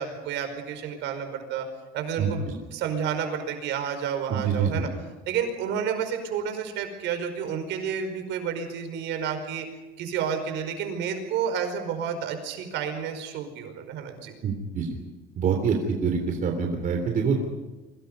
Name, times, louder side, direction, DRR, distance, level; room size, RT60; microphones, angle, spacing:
voice 1, 0.0-1.7 1.9-4.9 5.3-9.7 10.0-14.3, right 7 dB, 65° right, 7 dB, 5.2 m, -30 dB
voice 2, 2.2-2.5 4.3-4.8 14.4-14.9 15.4-17.5, right 6 dB, 40° right, 3 dB, 3.3 m, -26 dB
27.5 x 24.5 x 5.5 m, 1.3 s
cardioid pair, 155°, 20 cm